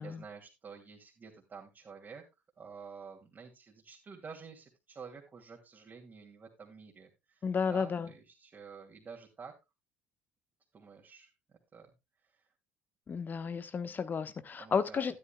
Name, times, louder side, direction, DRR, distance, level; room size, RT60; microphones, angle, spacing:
voice 1, 0.0-2.2 2.6-9.5 10.7-11.3 11.7-11.9 12.2-12.5 14.6-15.1, right 5 dB, 35° right, -2 dB, 2.6 m, -50 dB
voice 2, 7.4-8.1 13.1-15.2, left 6 dB, 35° left, 12 dB, 1.2 m, -33 dB
12.5 x 12.0 x 2.3 m, 0.23 s
hypercardioid pair, 60°, 5 cm